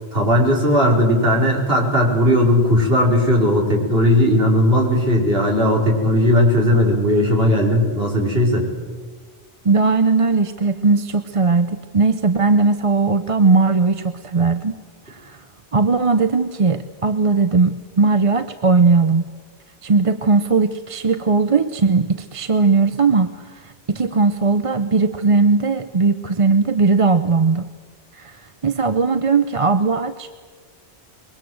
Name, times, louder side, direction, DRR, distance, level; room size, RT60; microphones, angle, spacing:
voice 1, 0.1-8.6, equal, 65° right, -1 dB, 5.2 m, -17 dB
voice 2, 9.6-14.8 15.1-15.4 15.7-19.3 19.8-27.7 28.1-30.3, right 4 dB, 35° right, 9 dB, 0.8 m, -18 dB
24.0 x 22.5 x 7.8 m, 1.4 s
omnidirectional pair, 1.1 m